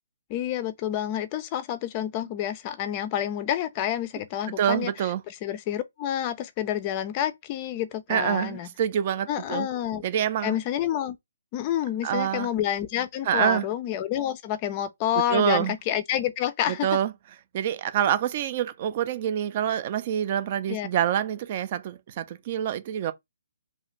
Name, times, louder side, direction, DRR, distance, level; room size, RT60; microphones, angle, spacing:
voice 1, 0.3-4.9 5.4-8.7 9.3-10.0 10.4-11.2 11.5-16.9 20.7-20.9, left 11 dB, 30° left, 0.4 m, -28 dB
voice 2, 4.6-5.2 8.1-9.7 10.0-10.6 12.0-12.5 13.2-13.7 15.3-15.8 16.7-17.1 17.5-23.1, right 10 dB, 40° right, 0.4 m, -26 dB
2.5 x 2.4 x 2.9 m
hypercardioid pair, 145°, 0 cm